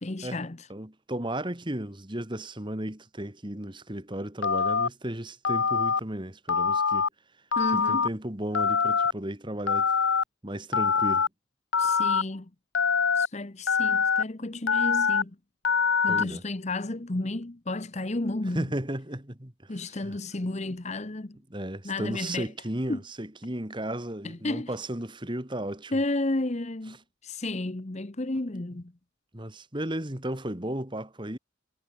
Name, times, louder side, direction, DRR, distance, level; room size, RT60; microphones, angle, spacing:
voice 1, 0.0-0.7 7.6-8.1 11.8-12.5 13.2-15.4 16.0-18.7 19.7-21.4 21.8-22.5 22.9-23.0 24.2-24.7 25.9-27.0 27.2-28.9, left 2 dB, 35° left, 0.9 m, -32 dB
voice 2, 0.7-7.1 7.7-9.9 10.4-11.3 16.1-16.4 18.5-20.2 21.5-26.0 29.3-31.4, right 1 dB, 25° right, 2.1 m, -34 dB
Telephone, 4.4-4.9 5.4-6.0 6.5-7.1 7.5-8.1 8.5-9.1 9.7-10.2 10.7-11.3 11.7-12.2 12.7-13.3 13.7-14.2 14.7-15.2 15.6-16.2, left 5 dB, 65° left, 1.1 m, -24 dB
head